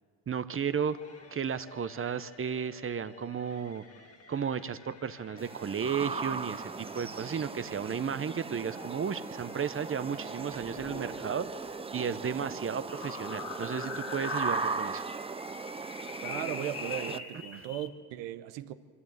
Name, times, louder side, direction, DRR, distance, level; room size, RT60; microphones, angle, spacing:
voice 1, 0.3-1.0 1.3-3.8 4.3-11.5 11.9-15.0, right 7 dB, 30° right, 0.9 m, -33 dB
sound 1, 0.8-11.8, left 4 dB, 35° left, 1.7 m, -54 dB
sound 2, 5.4-17.2, right 4 dB, 15° right, 0.5 m, -38 dB
sound 3, 10.5-17.9, left 6 dB, 60° left, 2.7 m, -42 dB
voice 2, 16.2-18.7, right 13 dB, 80° right, 1.0 m, -37 dB
24.0 x 14.0 x 8.0 m
supercardioid pair, 70°, 41 cm